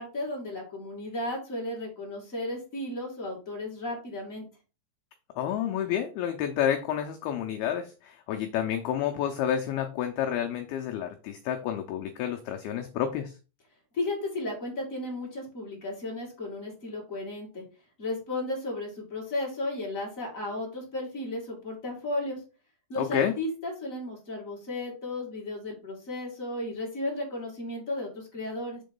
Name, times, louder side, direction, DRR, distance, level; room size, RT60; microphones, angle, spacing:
voice 1, 0.0-4.4 13.9-17.6 18.0-22.4 22.9-28.8, left 2 dB, 35° left, -2 dB, 1.2 m, -34 dB
voice 2, 5.4-13.4 23.0-23.3, left 9 dB, 85° left, 4 dB, 2.2 m, -29 dB
7.2 x 3.9 x 5.2 m, 0.33 s
omnidirectional pair, 5.3 m